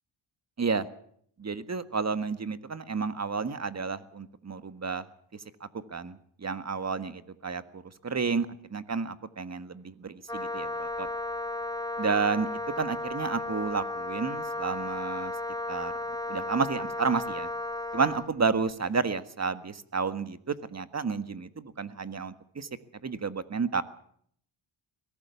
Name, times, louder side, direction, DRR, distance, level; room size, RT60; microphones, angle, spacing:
voice 1, 1.4-5.1 5.3-11.1 12.0-12.5 12.8-15.3 15.7-15.9 16.3-17.5 17.9-22.7 23.0-23.8, right 5 dB, 30° right, 11 dB, 1.7 m, -31 dB
Wind instrument woodwind instrument, 10.3-18.3, left 2 dB, 10° left, 2.0 m, -34 dB
22.5 x 17.5 x 7.1 m, 0.65 s
cardioid pair, 80°, 48 cm